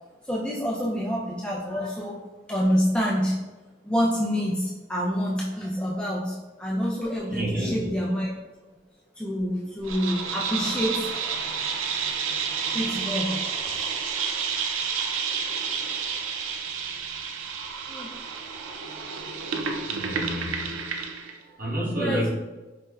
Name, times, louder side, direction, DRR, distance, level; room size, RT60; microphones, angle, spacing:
voice 1, 0.2-2.2 2.5-3.4 3.8-8.3 9.2-11.1 12.7-13.4 13.7-13.9 17.9-18.1 21.9-22.3, equal, 5° left, -5 dB, 0.3 m, -27 dB
voice 2, 7.3-7.9 19.8-22.3, right 1 dB, 45° right, -5 dB, 0.8 m, -31 dB
sound 1, 9.8-21.4, right 6 dB, 85° right, 0.4 m, -30 dB
4.5 x 2.0 x 2.2 m, 1.2 s
head